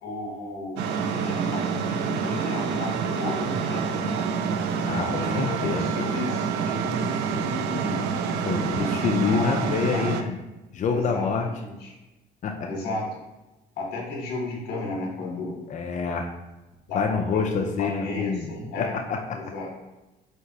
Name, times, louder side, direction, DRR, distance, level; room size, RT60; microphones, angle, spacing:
voice 1, 0.0-4.3 5.0-8.0 8.7-10.1 10.9-11.9 12.6-13.1 13.8-15.6 16.9-18.9 19.3-19.7, left 2 dB, 75° left, -2 dB, 1.2 m, -34 dB
sound 1, 0.8-10.2, right 6 dB, 85° right, 0.4 m, -27 dB
voice 2, 4.9-5.9 8.4-10.4 10.7-11.5 12.4-12.7 15.7-16.3 16.9-18.5 18.8-19.4, left 5 dB, 45° left, 3 dB, 0.5 m, -27 dB
4.7 x 3.3 x 2.8 m, 1.0 s
cardioid pair, 110°, 17 cm